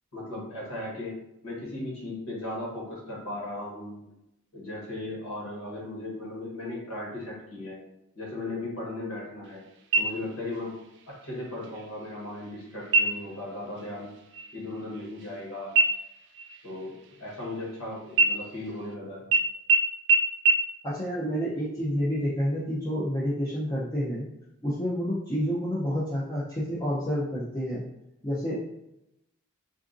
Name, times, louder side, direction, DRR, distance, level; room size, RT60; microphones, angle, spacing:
voice 1, 0.1-1.1 1.4-4.0 4.5-7.8 8.1-9.6 10.0-10.8 11.1-14.1 14.5-15.7 16.6-19.3, left 2 dB, 75° left, -4 dB, 1.2 m, -37 dB
sound 1, 9.9-10.6 11.0-11.1 11.6-12.2 12.8-13.4 13.8-14.0 14.3-15.4 15.8-17.8 18.1-18.9 19.3-19.4 19.7-19.8 20.1-20.2 20.5-20.6, right 3 dB, 55° right, 0.3 m, -25 dB
voice 2, 20.8-24.3 24.6-27.8 28.2-28.6, equal, 20° left, -8 dB, 0.5 m, -29 dB
3.7 x 2.4 x 2.5 m, 0.86 s
head